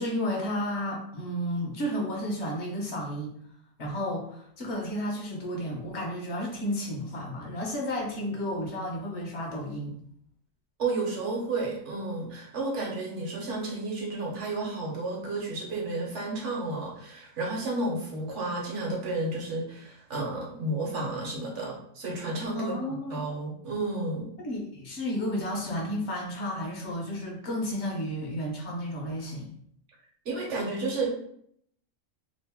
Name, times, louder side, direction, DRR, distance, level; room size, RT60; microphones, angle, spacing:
voice 1, 0.0-3.3 3.8-10.0 22.5-23.2 24.4-29.5, equal, 60° left, -1 dB, 1.0 m, -32 dB
voice 2, 10.8-24.3 30.2-31.1, right 2 dB, 60° right, -2 dB, 1.1 m, -32 dB
2.9 x 2.5 x 3.4 m, 0.68 s
omnidirectional pair, 1.4 m